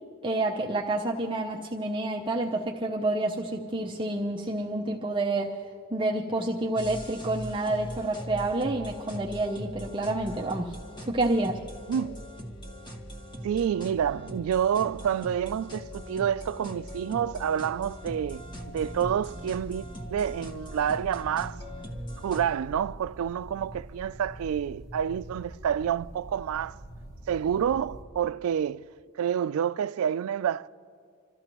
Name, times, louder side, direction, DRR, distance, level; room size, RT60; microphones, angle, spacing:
voice 1, 0.2-5.5 5.9-10.8 11.1-11.6, right 2 dB, 25° right, 0.6 m, -28 dB
sound 1, 6.7-22.5, equal, 25° left, 1.1 m, -41 dB
voice 2, 11.9-12.2 13.4-21.6 22.2-26.8 27.3-28.9 29.2-30.7, right 8 dB, 90° right, 0.3 m, -28 dB
sound 2, 18.0-28.0, right 1 dB, 55° left, 4.8 m, -44 dB
27.0 x 13.5 x 3.0 m
head